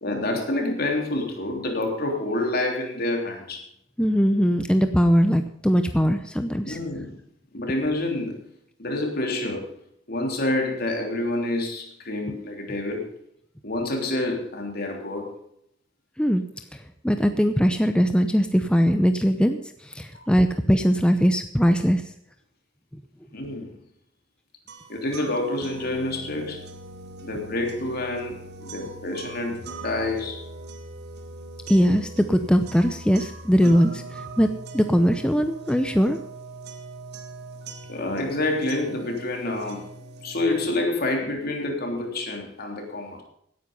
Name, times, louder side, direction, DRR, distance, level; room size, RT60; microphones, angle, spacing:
voice 1, 0.0-3.6 6.6-7.2 7.5-8.5 8.8-9.7 10.1-13.1 13.6-15.3 20.1-20.3 23.3-23.7 24.9-26.6 27.2-30.4 37.9-39.9 40.2-43.2, left 2 dB, 55° left, 2 dB, 3.3 m, -28 dB
voice 2, 4.0-6.8 16.2-16.4 17.0-22.0 31.7-34.5 34.7-36.2, equal, 5° left, 7 dB, 0.7 m, -20 dB
sound 1, 24.7-40.7, right 2 dB, 60° right, 1.8 m, -41 dB
17.0 x 9.7 x 5.4 m, 0.71 s
head